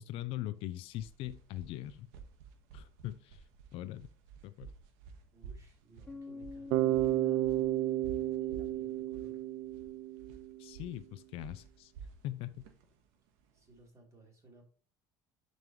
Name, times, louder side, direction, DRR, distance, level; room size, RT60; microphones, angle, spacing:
voice 1, 0.0-2.1 2.7-3.4 3.7-4.1 4.4-4.7 10.6-11.9 12.2-12.6, left 14 dB, 55° left, 13 dB, 0.5 m, -41 dB
sound 1, 0.6-13.8, right 5 dB, 85° right, 1.5 m, -52 dB
voice 2, 5.3-7.7 8.4-9.4 13.5-14.6, right 1 dB, 30° right, -1 dB, 3.6 m, -58 dB
Bass guitar, 6.1-9.9, left 3 dB, 10° left, 0.6 m, -50 dB
Bass guitar 2, 6.7-10.7, right 14 dB, 60° right, 0.5 m, -32 dB
11.0 x 5.4 x 3.1 m, 0.40 s
cardioid pair, 150°, 11 cm